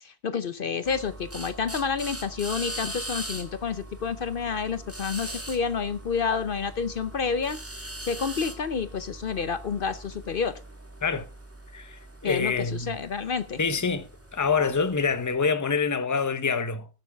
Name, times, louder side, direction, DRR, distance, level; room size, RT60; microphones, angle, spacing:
voice 1, 0.0-7.6 8.0-10.6 12.2-13.6, left 6 dB, 60° left, 0.9 m, -29 dB
sound 1, 0.8-15.3, right 1 dB, 15° right, 1.6 m, -41 dB
voice 2, 11.7-12.9 13.6-14.1 14.3-16.9, left 5 dB, 20° left, 0.9 m, -26 dB
20.0 x 7.3 x 3.5 m
omnidirectional pair, 1.1 m